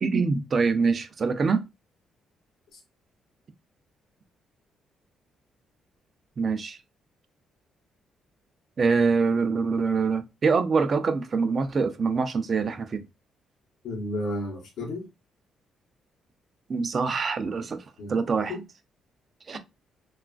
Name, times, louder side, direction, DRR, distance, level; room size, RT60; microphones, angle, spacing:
voice 1, 0.0-1.6 6.4-6.8 8.8-13.0 16.7-18.6 19.5-19.6, right 4 dB, 35° right, 0.4 m, -25 dB
voice 2, 13.8-15.1 18.0-18.1 18.5-18.6 19.5-19.6, left 1 dB, 65° left, 0.8 m, -32 dB
3.0 x 2.3 x 2.3 m
cardioid pair, 150°, 0 cm